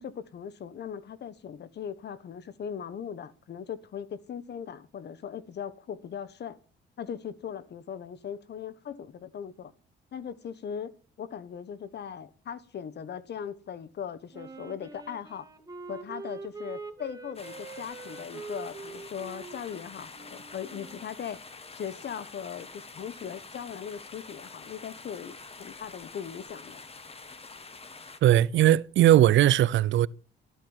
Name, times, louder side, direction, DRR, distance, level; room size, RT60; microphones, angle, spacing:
voice 1, 0.0-6.6 7.0-9.7 10.1-10.9 11.2-15.5 15.9-21.4 21.7-26.8, left 8 dB, 60° left, 1.5 m, -39 dB
Wind instrument woodwind instrument, 14.3-21.1, right 4 dB, 20° right, 2.7 m, -44 dB
sound 1, 17.3-28.2, left 4 dB, 30° left, 2.0 m, -47 dB
voice 2, 28.2-30.1, right 12 dB, 70° right, 0.7 m, -19 dB
13.5 x 12.5 x 7.3 m
cardioid pair, 90°, 20 cm